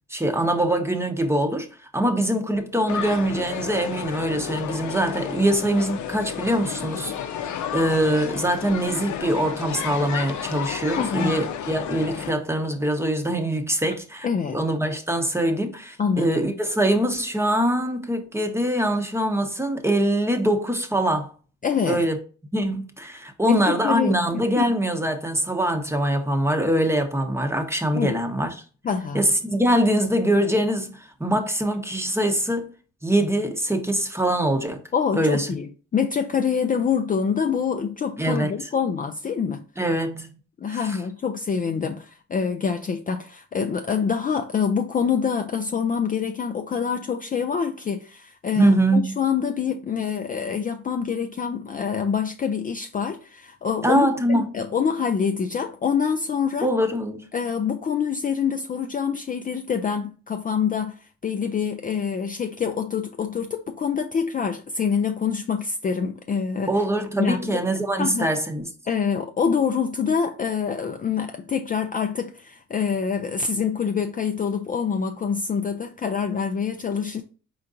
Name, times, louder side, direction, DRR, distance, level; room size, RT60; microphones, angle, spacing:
voice 1, 0.1-1.7 1.9-14.3 14.5-21.3 21.9-22.2 22.5-28.5 29.1-32.7 33.0-34.8 35.1-35.5 38.2-38.5 39.8-40.4 40.7-41.0 48.6-49.1 53.8-54.5 56.6-57.3 66.7-68.7, right 1 dB, 10° right, 0.8 m, -23 dB
sound 1, 2.9-12.3, left 9 dB, 70° left, 0.6 m, -32 dB
voice 2, 11.0-11.4 14.2-14.6 16.0-16.3 21.6-22.0 23.4-24.7 27.9-28.2 28.8-29.2 34.9-39.6 40.6-56.7 57.3-66.7 67.2-67.6 68.0-68.3 68.9-77.2, left 6 dB, 30° left, 0.4 m, -26 dB
4.4 x 3.8 x 2.5 m
cardioid pair, 90°, 30 cm